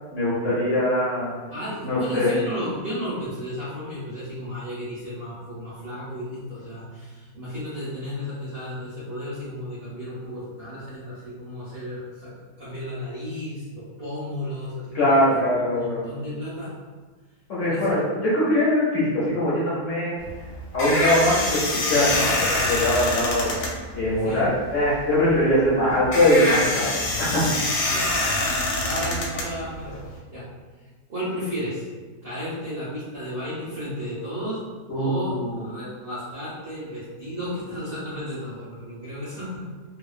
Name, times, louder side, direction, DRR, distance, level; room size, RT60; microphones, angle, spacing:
voice 1, 0.1-1.3 1.8-2.3 14.9-16.0 17.5-20.2 20.7-23.6 23.9-26.9 27.2-27.4 34.9-35.5, left 1 dB, 65° left, -8 dB, 0.7 m, -22 dB
voice 2, 1.5-12.3 12.6-16.7 17.6-18.0 24.2-24.5 27.8-28.4 28.8-30.5 31.1-31.9 32.2-34.6 34.9-35.4 35.6-39.7, equal, 45° right, -11 dB, 0.8 m, -33 dB
sound 1, 20.2-30.2, left 1 dB, 90° left, 1.3 m, -26 dB
2.9 x 2.1 x 2.4 m, 1.4 s
omnidirectional pair, 1.9 m